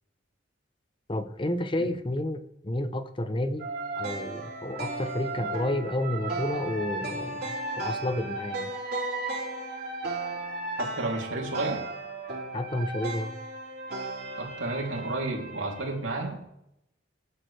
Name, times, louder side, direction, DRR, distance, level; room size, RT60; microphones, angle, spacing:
voice 1, 1.1-3.7 4.0-8.7 12.5-13.3, left 1 dB, 25° left, 0.8 m, -31 dB
sound 1, 3.6-16.0, right 2 dB, 50° right, 3.9 m, -35 dB
voice 2, 11.0-11.8 14.4-16.5, right 2 dB, 90° right, 3.1 m, -31 dB
20.5 x 10.0 x 3.4 m
head